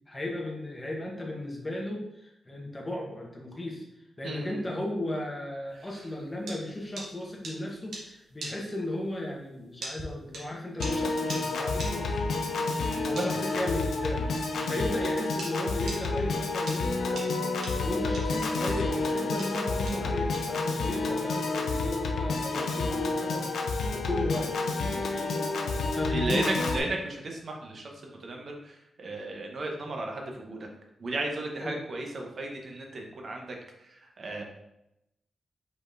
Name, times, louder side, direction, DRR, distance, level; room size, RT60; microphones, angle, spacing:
voice 1, 0.1-3.8 4.2-12.2 13.0-17.3 17.8-23.6 23.9-24.6 25.9-26.5 31.6-31.8, left 1 dB, 15° left, -1 dB, 0.9 m, -35 dB
voice 2, 4.2-4.6 12.5-13.4 14.6-14.8 25.1-25.3 26.1-30.7 31.0-34.4, right 2 dB, 40° right, 1 dB, 0.8 m, -35 dB
sound 1, 5.9-15.5 15.9-21.1, right 2 dB, 85° right, 1.3 m, -42 dB
Piano / Organ, 10.8-26.8, left 3 dB, 80° left, 0.6 m, -29 dB
5.1 x 4.1 x 2.5 m, 0.85 s
wide cardioid pair, 175°, 0 cm